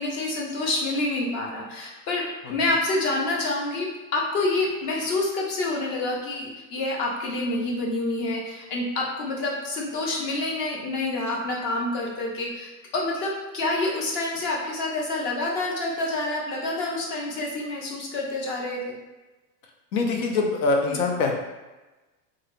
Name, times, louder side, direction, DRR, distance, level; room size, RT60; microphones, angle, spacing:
voice 1, 0.0-19.0 20.9-21.0, left 2 dB, 30° left, -2 dB, 0.4 m, -28 dB
voice 2, 19.9-21.3, left 3 dB, 80° left, 2 dB, 0.7 m, -23 dB
3.0 x 2.6 x 2.9 m, 1.1 s
supercardioid pair, 165°, 43 cm